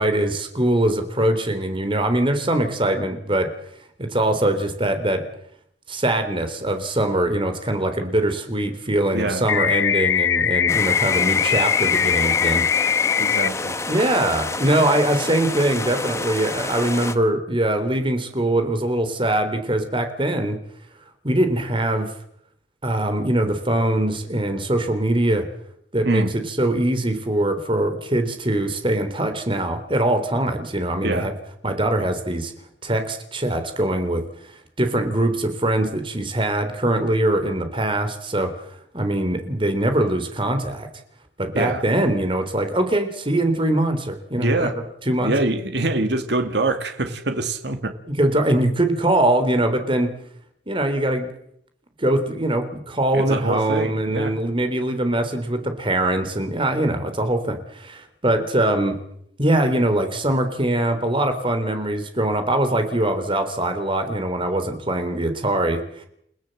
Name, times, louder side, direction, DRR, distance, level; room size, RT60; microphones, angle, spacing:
voice 1, 0.0-3.5 4.0-5.2 5.9-13.0 13.9-20.6 21.2-22.1 22.8-25.5 25.9-31.3 31.6-32.5 32.8-34.2 34.8-38.5 38.9-40.9 41.4-44.7 45.1-45.3 48.1-50.1 50.7-51.3 52.0-59.0 59.4-66.0, right 1 dB, 25° right, 8 dB, 3.5 m, -22 dB
voice 2, 9.1-9.4 13.2-13.8 26.0-26.3 31.0-31.3 41.5-41.8 44.4-44.8 45.2-47.9 53.1-54.4, right 2 dB, 60° right, 6 dB, 2.4 m, -24 dB
sound 1, 9.5-13.5, left 8 dB, 80° left, 1.0 m, -20 dB
sound 2, 10.7-17.1, left 3 dB, 15° left, 1.3 m, -29 dB
30.0 x 16.5 x 7.8 m, 0.72 s
head